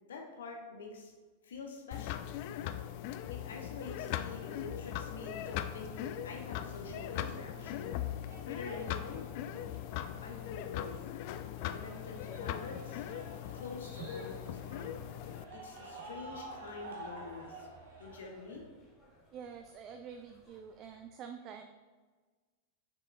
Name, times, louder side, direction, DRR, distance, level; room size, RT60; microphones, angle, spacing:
voice 1, 0.1-1.1 1.4-2.2 3.3-7.9 8.4-9.3 10.2-10.9 11.7-13.0 13.5-15.0 15.5-17.7 18.0-18.6, left 4 dB, 65° left, 1 dB, 0.9 m, -46 dB
sound 1, 1.9-15.4, left 11 dB, 45° left, 0.3 m, -40 dB
sound 2, 5.1-18.2, right 2 dB, 60° right, 1.2 m, -52 dB
sound 3, 11.3-21.0, right 1 dB, 20° left, 1.7 m, -56 dB
voice 2, 19.3-21.7, right 7 dB, 35° right, 6 dB, 0.4 m, -47 dB
6.3 x 6.2 x 2.4 m, 1.4 s
figure-of-eight pair, 90°, 0 cm